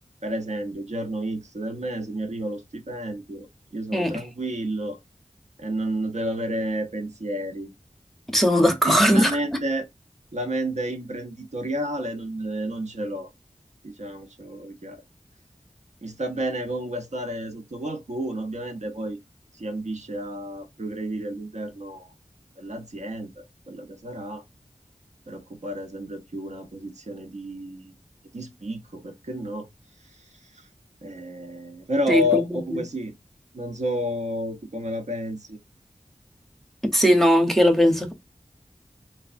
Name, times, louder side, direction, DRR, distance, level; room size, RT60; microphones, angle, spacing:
voice 1, 0.2-3.5 3.7-5.0 5.6-7.7 8.8-9.9 10.3-13.3 13.8-15.0 16.0-19.2 19.5-22.1 22.6-24.4 25.3-27.9 28.3-29.7 30.1-30.7 31.0-33.1 33.5-35.6, equal, 65° right, 0.7 m, -31 dB
voice 2, 3.9-4.2 8.3-9.3 32.1-32.8 36.9-38.1, equal, ahead, 0.7 m, -19 dB
3.2 x 2.2 x 2.4 m
wide cardioid pair, 55°, 13 cm